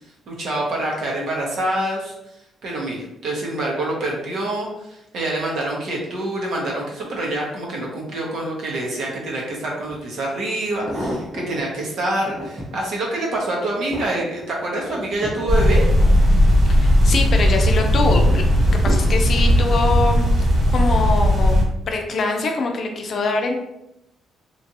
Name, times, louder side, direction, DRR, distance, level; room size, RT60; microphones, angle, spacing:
voice 1, 0.3-2.1 2.6-15.9, right 1 dB, 70° right, -2 dB, 1.0 m, -26 dB
sound 1, 9.9-10.0 10.6-11.6 12.1-12.8 13.3-16.8 17.2-17.6 18.3-19.6 20.4-20.8 21.1-21.2, equal, 25° right, 0.8 m, -33 dB
sound 2, 15.5-21.6, equal, 50° right, 1.1 m, -16 dB
voice 2, 16.7-18.4 18.8-20.2 20.7-21.6 21.9-23.6, left 3 dB, 55° left, 3 dB, 0.5 m, -23 dB
3.0 x 2.5 x 2.6 m, 0.85 s
cardioid pair, 90°, 0 cm